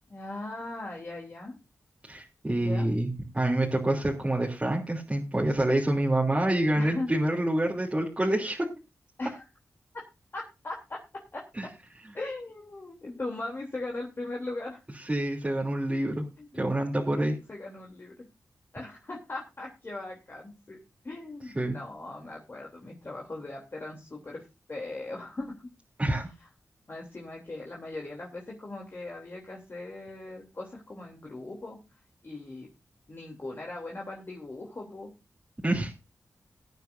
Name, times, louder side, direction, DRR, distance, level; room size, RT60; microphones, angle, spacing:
voice 1, 0.1-1.6 2.6-2.9 6.8-7.1 9.2-9.4 10.3-11.0 11.3-11.7 12.1-14.8 16.4-16.6 17.5-18.3 18.7-20.8 21.0-25.7 26.9-31.8 32.2-32.7 33.1-35.1, left 2 dB, 40° left, -1 dB, 3.1 m, -39 dB
voice 2, 2.1-8.7 11.6-11.7 15.0-16.2 16.5-17.4 21.5-21.8 26.0-26.3 35.6-35.9, right 1 dB, 20° right, -4 dB, 3.1 m, -27 dB
20.5 x 9.2 x 2.7 m, 0.27 s
wide cardioid pair, 95°, 6 cm